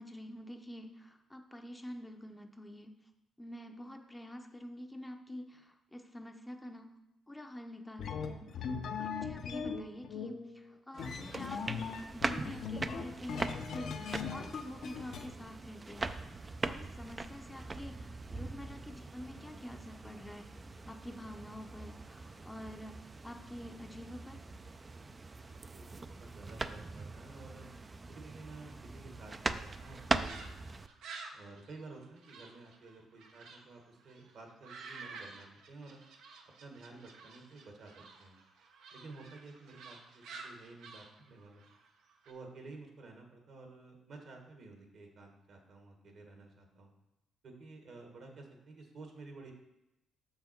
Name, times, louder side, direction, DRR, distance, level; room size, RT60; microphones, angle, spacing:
voice 1, 0.0-3.0 3.4-6.9 7.3-20.5 20.9-24.6, left 1 dB, 10° left, 4 dB, 0.6 m, -47 dB
sound 1, 8.0-15.3, left 6 dB, 65° left, 0.7 m, -40 dB
sound 2, 11.0-30.9, right 3 dB, 25° right, 0.4 m, -41 dB
voice 2, 25.7-27.7 28.1-30.8 31.3-36.0 36.6-38.3 38.9-41.6 42.2-46.9 47.4-49.5, right 3 dB, 65° right, 3 dB, 1.6 m, -52 dB
sound 3, 29.8-33.6 34.0-42.3, right 4 dB, 80° right, 0.9 m, -51 dB
6.6 x 5.6 x 4.5 m, 0.93 s
cardioid pair, 90°, 0 cm